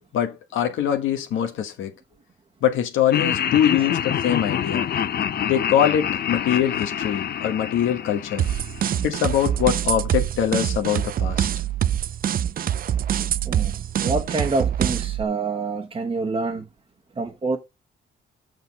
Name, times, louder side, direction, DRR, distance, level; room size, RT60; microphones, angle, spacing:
voice 1, 0.1-1.9 2.6-4.9 5.4-8.5 9.0-11.5, left 10 dB, 80° left, 1.3 m, -23 dB
Laughter, 3.1-9.3, left 9 dB, 50° left, 0.7 m, -27 dB
sound 1, 8.4-15.2, right 10 dB, 45° right, 0.4 m, -25 dB
voice 2, 13.1-16.7 17.1-17.6, right 3 dB, 25° right, 1.2 m, -27 dB
6.8 x 6.2 x 5.1 m
cardioid pair, 90°, 20 cm